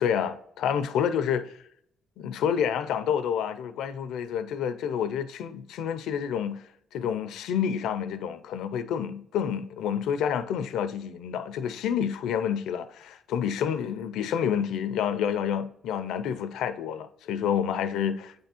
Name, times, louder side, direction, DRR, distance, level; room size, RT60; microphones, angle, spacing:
voice 1, 0.0-1.5 2.2-18.3, left 8 dB, 85° left, 0.5 m, -29 dB
8.1 x 3.5 x 4.3 m
cardioid pair, 90°, 0 cm